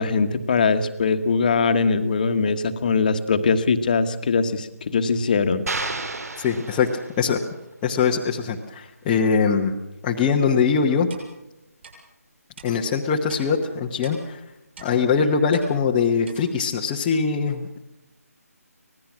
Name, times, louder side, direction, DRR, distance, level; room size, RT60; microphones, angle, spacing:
voice 1, 0.0-5.7, left 4 dB, 30° left, 8 dB, 1.3 m, -21 dB
sound 1, 5.7-7.4, right 3 dB, 70° right, 4.0 m, -31 dB
voice 2, 6.4-6.9 7.2-7.4 7.8-9.7 10.0-11.1 12.6-14.4 14.8-17.8, left 6 dB, 10° left, -2 dB, 0.9 m, -22 dB
Clock, 11.1-11.3 11.8-11.9 12.6-12.7 13.3-13.4 14.0-14.2 14.8-14.9 15.5-15.7 16.2-16.4, right 5 dB, 45° right, 7.2 m, -43 dB
25.5 x 19.0 x 6.0 m, 0.93 s
figure-of-eight pair, 170°, 9 cm